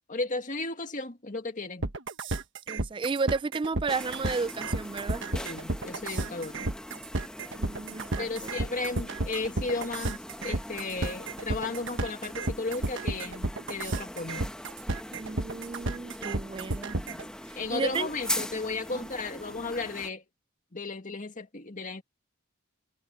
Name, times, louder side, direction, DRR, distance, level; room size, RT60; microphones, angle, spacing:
voice 1, 0.1-1.9 5.3-6.6 8.2-14.5 17.6-20.2 20.7-22.0, left 3 dB, 40° left, 1.9 m, -34 dB
sound 1, 1.8-17.2, right 2 dB, 60° right, 1.4 m, -32 dB
voice 2, 2.7-5.2 7.5-8.5 15.1-17.2 17.7-18.1 18.9-19.0, right 4 dB, 25° right, 0.3 m, -33 dB
sound 2, 3.9-20.1, left 1 dB, 5° left, 1.4 m, -41 dB
head